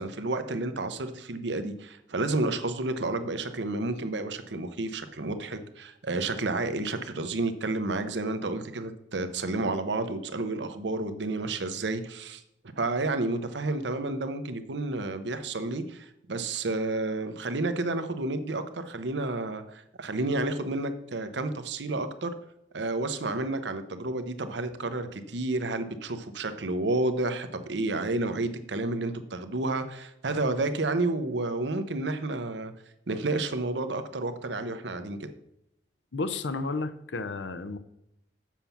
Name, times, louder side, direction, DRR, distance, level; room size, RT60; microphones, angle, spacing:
voice 1, 0.0-12.4 12.8-22.3 22.7-32.7 33.1-35.3, right 2 dB, 80° right, 9 dB, 0.9 m, -30 dB
voice 2, 36.1-37.8, left 3 dB, 80° left, 12 dB, 0.7 m, -32 dB
7.4 x 7.0 x 5.8 m, 0.81 s
head